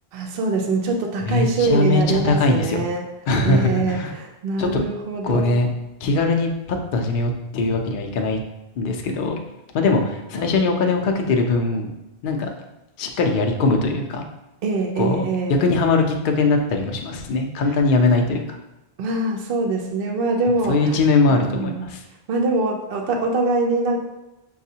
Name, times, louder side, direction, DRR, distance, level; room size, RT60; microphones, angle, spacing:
voice 1, 0.1-3.0 3.4-5.6 14.6-15.6 19.0-20.9 21.3-21.9 22.3-24.0, right 3 dB, 65° right, 1 dB, 0.7 m, -23 dB
voice 2, 1.2-2.9 3.3-4.1 4.6-4.8 5.2-5.7 6.0-8.4 8.8-9.4 9.7-11.9 12.2-12.5 13.0-14.2 15.0-18.6 20.7-22.0, left 3 dB, 60° left, 3 dB, 0.6 m, -21 dB
6.0 x 2.4 x 2.7 m, 0.96 s
omnidirectional pair, 1.1 m